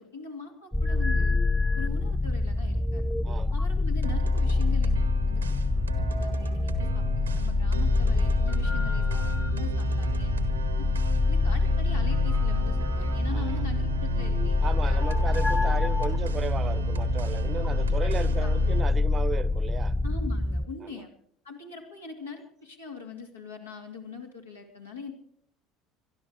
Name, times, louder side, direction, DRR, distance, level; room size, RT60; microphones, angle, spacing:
voice 1, 0.0-1.4 1.7-3.1 3.5-5.4 5.7-9.2 9.5-10.3 10.8-10.9 11.3-15.0 15.4-15.7 18.0-18.5 20.0-21.1 21.4-25.1, left 5 dB, 85° left, 2.7 m, -42 dB
sound 1, 0.7-20.7, left 2 dB, 10° left, 1.1 m, -26 dB
sound 2, 4.0-18.8, right 1 dB, 85° right, 1.3 m, -35 dB
voice 2, 13.3-13.6 14.6-19.9 20.9-21.0, right 6 dB, 30° right, 0.9 m, -35 dB
22.0 x 12.5 x 4.9 m
figure-of-eight pair, 65°, 0 cm